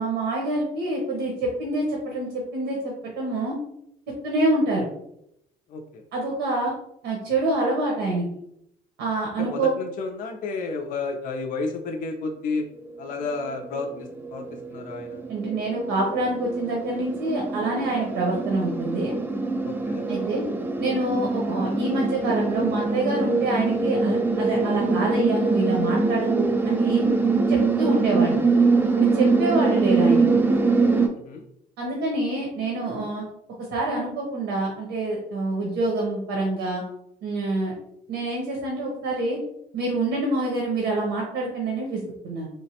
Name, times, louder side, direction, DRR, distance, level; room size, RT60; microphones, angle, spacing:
voice 1, 0.0-3.6 4.1-4.9 6.1-6.7 7.0-8.3 9.0-9.7 15.3-19.1 20.1-20.4 20.8-27.1 27.5-28.4 29.0-30.2 31.8-33.2 33.7-36.8 37.2-37.7 38.1-39.4 39.7-42.5, right 2 dB, 85° right, -1 dB, 0.8 m, -26 dB
voice 2, 5.7-6.0 9.4-12.6 13.0-15.2 19.6-20.1 31.2-31.4, left 3 dB, 55° left, 2 dB, 0.4 m, -31 dB
sound 1, 12.5-12.6 13.0-31.1, right 4 dB, 10° right, 0.3 m, -24 dB
3.1 x 2.0 x 2.8 m, 0.77 s
cardioid pair, 110°, 17 cm